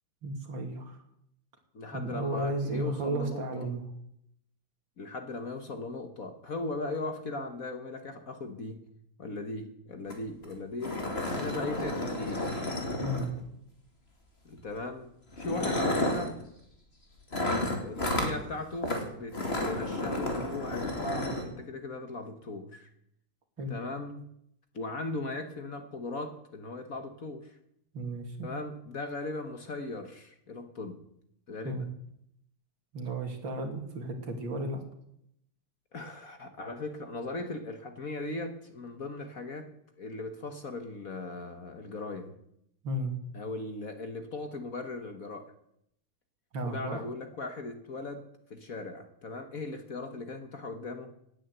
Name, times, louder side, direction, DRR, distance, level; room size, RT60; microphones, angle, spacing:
voice 1, 0.2-1.0 1.9-3.8 13.0-13.3 23.6-23.7 27.9-28.5 31.6-31.8 32.9-34.8 42.8-43.1 46.5-47.0, right 1 dB, 65° right, 4 dB, 3.2 m, -34 dB
voice 2, 1.7-3.7 5.0-8.9 9.2-11.0 11.4-12.8 14.4-16.4 17.8-22.9 23.7-24.2 24.7-27.6 28.4-31.0 31.5-31.9 35.9-39.7 40.0-42.4 43.3-45.5 46.6-51.1, left 2 dB, 45° left, 7 dB, 1.5 m, -38 dB
sound 1, 10.1-10.2 10.4-10.5 10.8-13.6 14.6-14.8 15.3-16.3 17.3-18.3 18.8-19.0 19.3-21.4, left 1 dB, 30° left, 2.9 m, -31 dB
18.0 x 10.0 x 8.0 m, 0.75 s
omnidirectional pair, 2.3 m